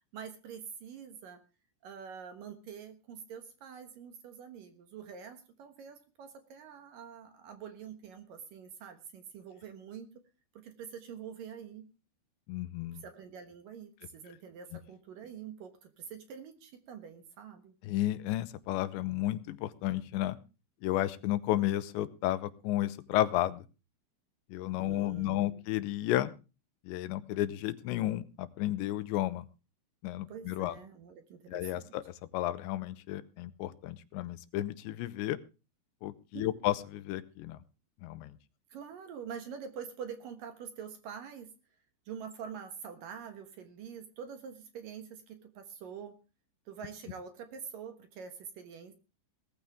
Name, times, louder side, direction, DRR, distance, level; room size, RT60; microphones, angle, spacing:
voice 1, 0.1-1.4 1.8-10.1 10.5-11.9 12.9-17.7 24.8-25.6 30.3-32.0 36.3-36.6 38.7-41.5 42.1-46.2 46.7-48.9, right 7 dB, 65° right, 8 dB, 2.5 m, -46 dB
voice 2, 12.5-13.0 17.8-20.4 20.8-23.7 24.5-26.3 26.9-29.5 30.0-30.8 31.5-35.4 36.0-37.6 38.0-38.4, left 14 dB, 85° left, 15 dB, 3.1 m, -32 dB
19.0 x 14.0 x 3.6 m, 0.32 s
omnidirectional pair, 5.1 m